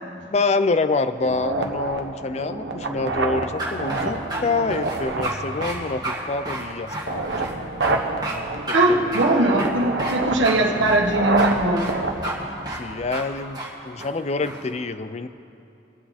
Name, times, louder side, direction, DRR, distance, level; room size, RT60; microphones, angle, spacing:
voice 1, 0.3-7.5 8.9-9.7 12.4-12.5 12.8-15.3, left 3 dB, 35° left, 12 dB, 0.4 m, -26 dB
sound 1, 1.2-13.2, right 3 dB, 60° right, 1.1 m, -28 dB
sound 2, 3.6-4.4 4.7-5.4 5.6-5.8 6.0-6.2 6.5-7.5 7.8-7.9 8.2-8.4 8.7-8.8 9.1-9.2 9.6-10.2 10.4-10.6 10.8-11.5 11.8-11.9 12.2-12.3 12.7-12.8 13.1-13.2 13.5-13.7 14.0-14.6, right 1 dB, 20° right, 2.0 m, -30 dB
voice 2, 8.7-11.9, right 2 dB, 75° right, -1 dB, 1.4 m, -20 dB
24.0 x 8.2 x 4.3 m, 2.8 s
head